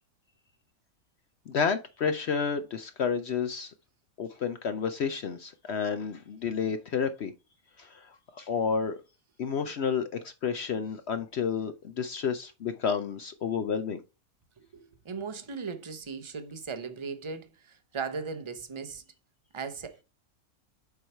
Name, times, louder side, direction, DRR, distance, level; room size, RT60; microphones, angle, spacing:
voice 1, 1.5-3.7 4.2-7.3 7.8-8.1 8.4-9.0 9.4-14.0, left 6 dB, 60° left, 0.8 m, -30 dB
voice 2, 14.6-19.0 19.5-20.0, right 5 dB, 25° right, 0.7 m, -38 dB
7.1 x 4.6 x 4.4 m
omnidirectional pair, 1.5 m